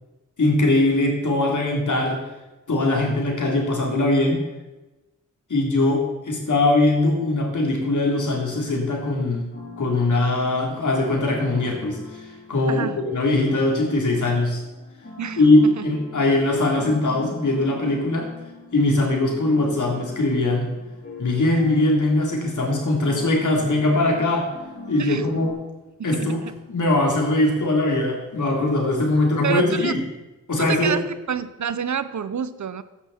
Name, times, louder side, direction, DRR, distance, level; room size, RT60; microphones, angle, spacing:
voice 1, 0.4-2.2 2.7-4.4 5.5-9.5 9.8-14.6 15.4-18.3 18.7-20.7 21.2-24.5 24.9-25.6 26.0-26.4 26.7-30.0 30.5-31.0, left 2 dB, 70° left, -1 dB, 3.8 m, -21 dB
sound 1, 9.5-25.5, left 3 dB, 40° left, 5.1 m, -42 dB
voice 2, 12.7-13.0 15.2-15.9 25.0-25.3 26.0-26.5 29.4-29.9 30.6-32.8, right 7 dB, 65° right, 14 dB, 0.8 m, -28 dB
15.5 x 10.5 x 4.4 m, 1.1 s
cardioid pair, 55°, 31 cm